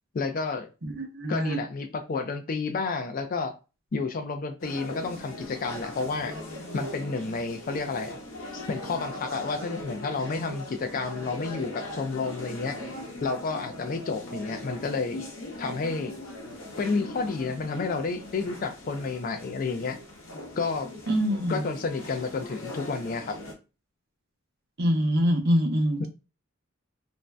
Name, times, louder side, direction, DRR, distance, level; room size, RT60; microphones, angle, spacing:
voice 1, 0.1-0.7 1.3-3.5 3.9-6.3 6.7-8.2 8.5-12.8 13.2-15.2 15.6-16.2 16.8-20.0 20.6-20.9 21.5-23.4 26.0-26.1, left 4 dB, 40° left, 7 dB, 0.3 m, -30 dB
voice 2, 0.8-1.6 21.1-21.6 24.8-26.1, equal, 50° right, 4 dB, 0.6 m, -25 dB
sound 1, 4.6-23.5, left 1 dB, 75° left, 0.9 m, -40 dB
2.5 x 2.1 x 3.2 m, 0.30 s
head